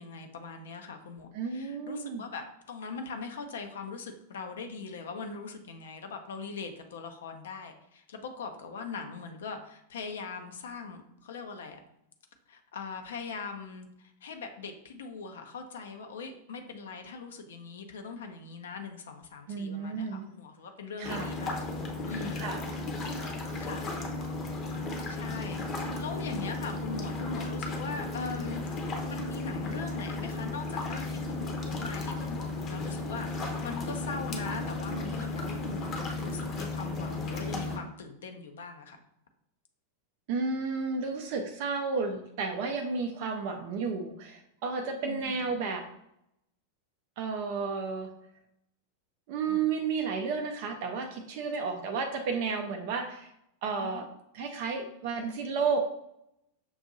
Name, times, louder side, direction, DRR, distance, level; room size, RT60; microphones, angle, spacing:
voice 1, 0.0-11.8 12.5-21.8 22.0-22.6 23.6-23.9 25.1-39.0 45.1-45.5 49.5-49.7 53.8-54.0, left 4 dB, 60° left, 5 dB, 0.5 m, -41 dB
voice 2, 1.3-2.2 19.5-20.3 21.0-21.3 22.4-22.6 40.3-45.8 47.2-48.1 49.3-53.3 53.6-54.0 54.3-55.8, right 5 dB, 50° right, 3 dB, 0.4 m, -32 dB
sound 1, 21.0-37.8, left 2 dB, 30° left, 0.7 m, -34 dB
6.1 x 2.6 x 2.6 m, 0.78 s
figure-of-eight pair, 90°, 0 cm